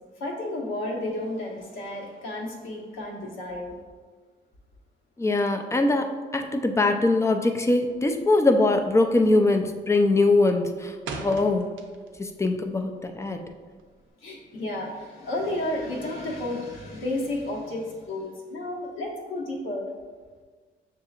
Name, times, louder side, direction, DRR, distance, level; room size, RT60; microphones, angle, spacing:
voice 1, 0.2-3.7 14.2-19.9, left 1 dB, 80° left, -2 dB, 1.0 m, -32 dB
voice 2, 5.2-11.7 12.2-13.4, left 2 dB, 15° left, 5 dB, 0.4 m, -22 dB
sound 1, 7.9-8.2 8.5-8.9 9.2-9.6 10.0-12.3 12.6-14.1, right 4 dB, 85° right, 0.6 m, -39 dB
6.7 x 2.8 x 2.4 m, 1.5 s
cardioid pair, 90°, 20 cm